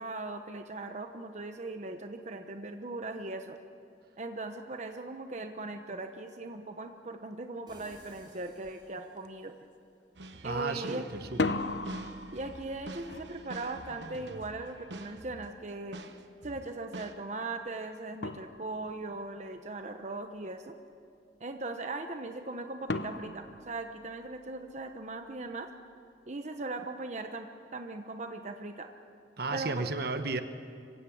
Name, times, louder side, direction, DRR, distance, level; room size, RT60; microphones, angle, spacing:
voice 1, 0.0-3.6 4.2-9.5 10.4-11.1 12.3-16.0 16.4-20.7 21.4-25.7 26.3-28.9 29.5-29.9, right 2 dB, 40° right, 6 dB, 1.0 m, -39 dB
sound 1, 7.7-9.5, right 1 dB, 25° right, 6.1 m, -56 dB
sound 2, 8.6-8.8 9.2-9.7 11.2-16.0 17.7-17.8 18.2-19.1 22.9-24.6, left 3 dB, 75° left, 0.9 m, -38 dB
sound 3, 10.2-15.6 15.9-17.1, right 2 dB, 80° right, 1.2 m, -46 dB
voice 2, 10.4-11.7 29.4-30.4, right 3 dB, 60° right, 9 dB, 1.2 m, -34 dB
25.0 x 16.0 x 8.6 m, 2.3 s
head